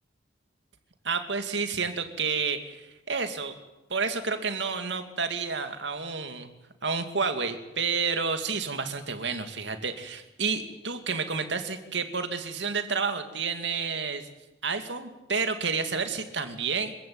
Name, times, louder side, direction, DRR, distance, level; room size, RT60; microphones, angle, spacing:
voice 1, 1.0-3.5 3.9-6.5 6.8-14.3 14.6-16.9, right 5 dB, 80° right, 8 dB, 2.4 m, -30 dB
25.5 x 15.5 x 8.8 m, 1.0 s
head